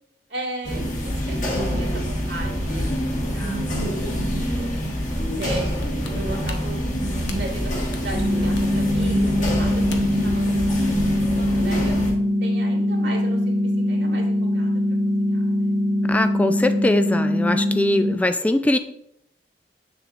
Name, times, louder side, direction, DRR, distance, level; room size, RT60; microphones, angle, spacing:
voice 1, 0.3-3.6 4.0-4.7 5.3-6.8 7.4-12.1 12.4-14.8 15.2-15.7, right 2 dB, 90° right, -3 dB, 2.0 m, -36 dB
sound 1, 0.6-12.1, equal, 45° left, 1.6 m, -26 dB
sound 2, 5.4-10.3 10.7-10.8, left 3 dB, 85° left, 0.8 m, -38 dB
sound 3, 8.1-18.1, left 1 dB, 10° right, 1.1 m, -22 dB
voice 2, 16.1-18.8, left 1 dB, 10° left, 8 dB, 0.3 m, -21 dB
7.4 x 6.7 x 2.5 m, 0.75 s
head